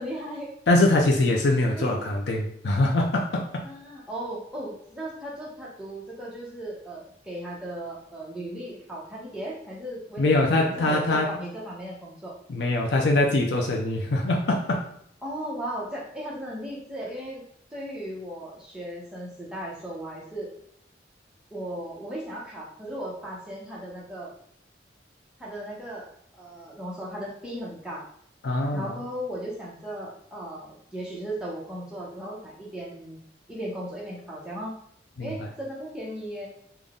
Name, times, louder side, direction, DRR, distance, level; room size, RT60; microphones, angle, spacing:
voice 1, 0.0-0.5 1.7-1.9 3.6-12.4 15.2-17.4 17.7-20.5 21.5-24.3 25.4-26.1 26.4-28.0 28.7-33.2 33.5-34.8 35.2-36.5, right 1 dB, 5° right, -6 dB, 0.9 m, -36 dB
voice 2, 0.7-3.6 10.2-11.3 12.5-14.8 28.4-28.9 35.2-35.3, left 2 dB, 75° left, -1 dB, 0.5 m, -23 dB
3.8 x 2.2 x 3.6 m, 0.68 s
head